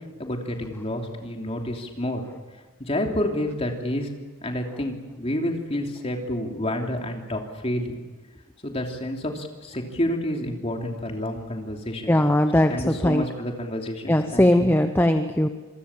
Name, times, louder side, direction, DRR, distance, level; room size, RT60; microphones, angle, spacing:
voice 1, 0.2-2.2 2.8-4.1 4.4-7.9 8.6-12.1 12.7-14.7, left 1 dB, 30° left, 2 dB, 3.1 m, -29 dB
voice 2, 12.1-13.2 14.1-15.5, left 1 dB, 10° left, 7 dB, 0.8 m, -20 dB
26.5 x 23.0 x 7.4 m, 1.3 s
head